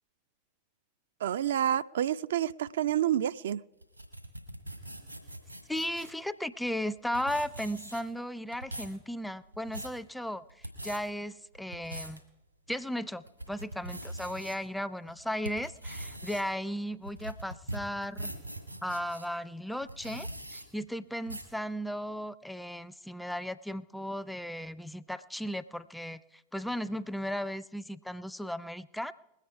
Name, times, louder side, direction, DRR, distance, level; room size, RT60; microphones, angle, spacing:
voice 1, 1.2-3.6, right 10 dB, 60° right, 14 dB, 0.3 m, -28 dB
sound 1, 3.8-6.2 6.9-7.0 7.1-8.2 8.5-9.0 9.4-10.0 10.5-11.0 11.5-12.2 12.7-12.8 13.3-14.6 15.1-19.3 19.8-20.6 21.3-21.6, right 1 dB, 90° right, 2.0 m, -41 dB
voice 2, 5.7-10.4 10.8-12.2 12.7-18.3 18.8-26.2 26.5-29.1, equal, 5° left, 15 dB, 0.4 m, -36 dB
20.5 x 8.3 x 4.7 m, 0.93 s
figure-of-eight pair, 90°, 0 cm